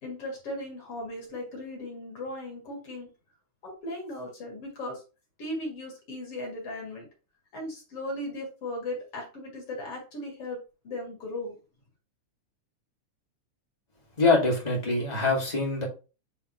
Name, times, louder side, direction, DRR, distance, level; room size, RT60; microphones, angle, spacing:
voice 1, 0.0-3.1 3.6-5.0 5.4-7.1 7.5-10.6 10.8-11.6, left 1 dB, 50° left, -1 dB, 2.8 m, -37 dB
voice 2, 14.2-15.8, left 3 dB, 20° left, -1 dB, 1.4 m, -24 dB
8.8 x 3.8 x 3.0 m, 0.32 s
omnidirectional pair, 3.5 m